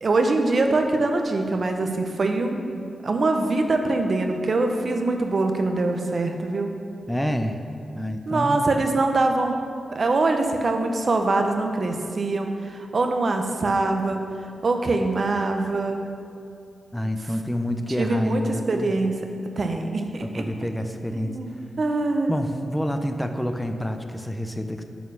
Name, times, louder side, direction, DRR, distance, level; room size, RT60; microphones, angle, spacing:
voice 1, 0.0-6.7 8.3-9.6 9.9-14.3 14.6-16.1 18.0-19.2 19.6-20.5 21.2-21.5 21.8-22.4, right 2 dB, 55° right, 5 dB, 0.7 m, -23 dB
voice 2, 7.1-7.6 7.9-8.6 16.9-18.9 20.2-21.3 22.3-24.8, equal, 5° left, 6 dB, 0.5 m, -28 dB
6.8 x 4.3 x 6.3 m, 2.4 s
cardioid pair, 70°, 0 cm